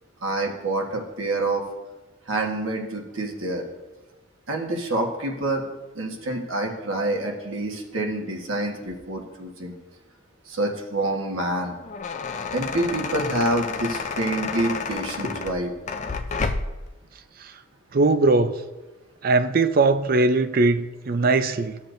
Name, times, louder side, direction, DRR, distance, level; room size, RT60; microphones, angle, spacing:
voice 1, 0.2-1.7 2.3-3.6 4.5-5.6 5.9-9.7 10.4-11.7 12.5-15.7, right 2 dB, 80° right, 1 dB, 1.4 m, -27 dB
sound 1, 11.7-16.9, left 4 dB, 35° left, 0.5 m, -30 dB
voice 2, 17.9-18.6 19.2-21.8, right 3 dB, 45° right, 10 dB, 0.4 m, -20 dB
14.0 x 7.2 x 2.6 m, 1.1 s
head